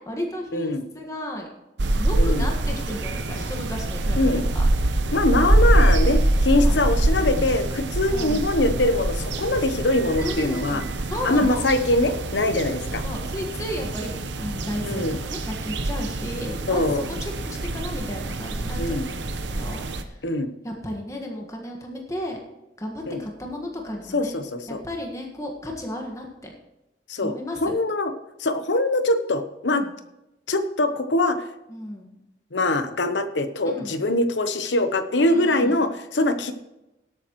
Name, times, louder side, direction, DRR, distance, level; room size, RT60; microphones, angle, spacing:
voice 1, 0.0-1.5 1.9-4.6 6.6-6.7 8.1-8.4 10.2-11.6 13.0-20.2 20.6-22.4 22.8-24.4 24.7-26.5 27.2-27.7 29.7-29.9 31.7-32.2 33.6-33.9 35.3-35.8, left 1 dB, 20° left, 1 dB, 1.6 m, -34 dB
voice 2, 0.5-0.8 2.2-2.5 4.2-4.5 5.1-10.8 11.2-13.0 14.9-15.2 16.7-17.0 18.8-19.1 20.2-20.5 23.1-23.2 24.1-24.8 27.1-28.1 28.4-29.8 30.5-31.5 32.5-36.5, left 2 dB, 85° left, 9 dB, 1.0 m, -23 dB
sound 1, 1.8-20.0, right 1 dB, 85° right, 0.9 m, -25 dB
18.5 x 8.4 x 3.1 m, 0.97 s
head